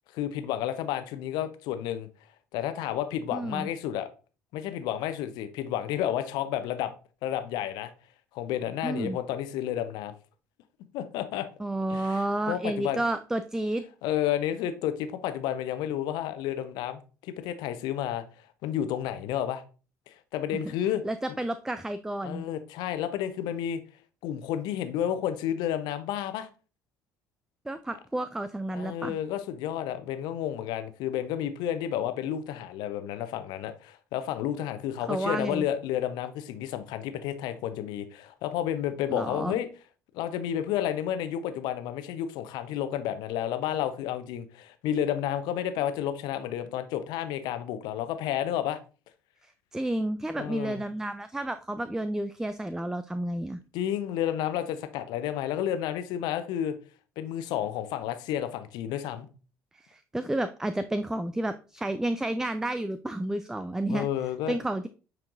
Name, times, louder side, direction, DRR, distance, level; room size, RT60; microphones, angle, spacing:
voice 1, 0.1-2.1 2.5-4.1 4.5-6.9 7.2-7.9 8.3-10.1 10.9-11.5 11.9-13.0 14.0-18.2 18.6-19.6 20.1-21.0 22.2-23.8 24.2-26.5 28.7-39.7 40.1-48.8 50.4-50.8 53.7-56.7 57.2-59.3 63.9-64.6, left 11 dB, 55° left, 0.8 m, -31 dB
voice 2, 3.3-3.7 8.8-9.2 11.6-13.8 21.0-22.4 27.7-29.2 35.1-35.7 39.1-39.6 49.4-53.6 59.7-64.1 64.5-64.9, right 1 dB, 5° right, 0.4 m, -31 dB
9.2 x 4.5 x 2.6 m
figure-of-eight pair, 55°, 8 cm